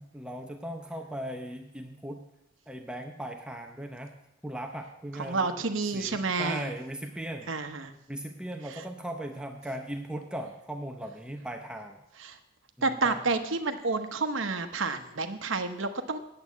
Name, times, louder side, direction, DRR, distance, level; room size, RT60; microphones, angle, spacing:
voice 1, 0.0-2.3 2.7-4.1 4.4-5.5 5.9-7.5 8.1-12.0 12.8-13.2, right 1 dB, 5° right, 4 dB, 0.7 m, -38 dB
voice 2, 5.2-6.7 7.5-7.9 8.7-8.8 12.2-12.4 12.8-16.2, right 3 dB, 70° right, 8 dB, 1.0 m, -30 dB
9.2 x 7.9 x 8.4 m, 0.88 s
head